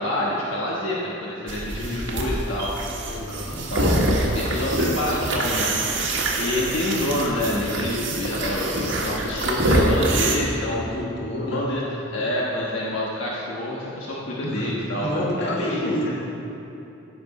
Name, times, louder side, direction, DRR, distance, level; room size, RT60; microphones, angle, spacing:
voice 1, 0.0-2.7 3.7-5.8 6.1-10.8 11.5-16.1, left 1 dB, 80° left, -5 dB, 1.3 m, -27 dB
sound 1, 1.5-10.4, right 1 dB, 75° right, 1.4 m, -25 dB
voice 2, 1.8-2.1 3.1-3.8 6.5-6.7 10.7-11.6 14.4-14.7 15.0-16.1, left 1 dB, 55° left, -4 dB, 1.9 m, -30 dB
16.0 x 6.0 x 4.2 m, 3.0 s
head